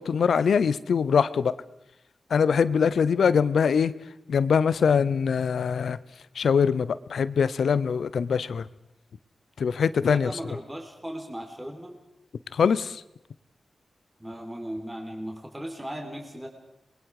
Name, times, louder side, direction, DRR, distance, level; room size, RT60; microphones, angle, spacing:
voice 1, 0.0-1.5 2.3-3.9 4.3-6.0 6.4-8.7 9.6-10.3 12.5-13.0, left 6 dB, 90° left, 16 dB, 0.7 m, -23 dB
voice 2, 10.1-12.0 14.2-16.5, equal, 15° right, 3 dB, 3.9 m, -37 dB
27.0 x 21.5 x 4.9 m, 0.86 s
cardioid pair, 65°, 0 cm